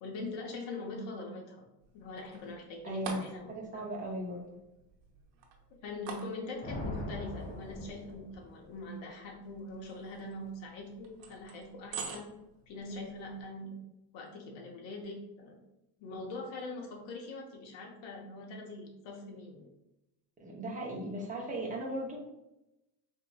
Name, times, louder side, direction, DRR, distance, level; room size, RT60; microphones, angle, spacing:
voice 1, 0.0-1.6 1.9-3.9 5.8-12.3 12.7-13.8 14.1-15.6 16.0-19.7, left 2 dB, 70° left, 0 dB, 0.9 m, -43 dB
sound 1, 1.8-13.5, right 5 dB, 75° right, 0.9 m, -49 dB
voice 2, 2.8-3.2 3.5-4.6 12.9-13.0 20.4-22.2, right 1 dB, 15° right, -2 dB, 0.7 m, -37 dB
Thunder, 6.6-8.8, left 1 dB, 20° left, 0.5 m, -41 dB
3.7 x 2.8 x 2.3 m, 0.91 s
cardioid pair, 150°, 46 cm